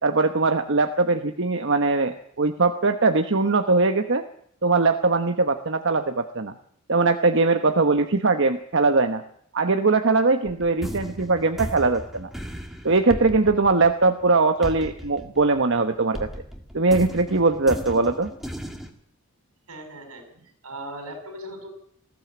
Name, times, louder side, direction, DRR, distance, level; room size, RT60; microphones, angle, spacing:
voice 1, 0.0-4.2 4.6-6.5 6.9-9.2 9.5-12.3 12.8-16.3 16.7-18.3, right 3 dB, 55° right, 7 dB, 1.1 m, -21 dB
sound 1, 10.4-15.8 16.1-18.9, equal, ahead, 2.0 m, -36 dB
voice 2, 19.7-21.7, right 1 dB, 85° right, 6 dB, 6.6 m, -39 dB
20.0 x 15.5 x 8.6 m, 0.68 s
head